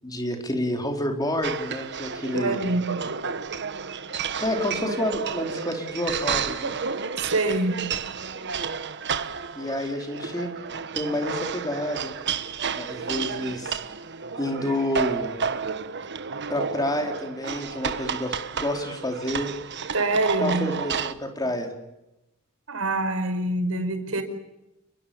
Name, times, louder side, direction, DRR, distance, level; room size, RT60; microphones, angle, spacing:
voice 1, 0.0-2.6 4.4-6.8 9.5-10.5 10.9-12.1 12.7-13.8 14.4-15.4 16.5-19.5 20.4-21.7, left 1 dB, 20° left, 4 dB, 4.3 m, -29 dB
sound 1, 1.4-21.1, right 6 dB, 55° right, 1.3 m, -31 dB
voice 2, 2.3-2.8 7.2-7.8 19.9-20.7 22.7-24.2, right 2 dB, 80° right, 8 dB, 4.9 m, -25 dB
29.0 x 22.0 x 7.1 m, 0.92 s
head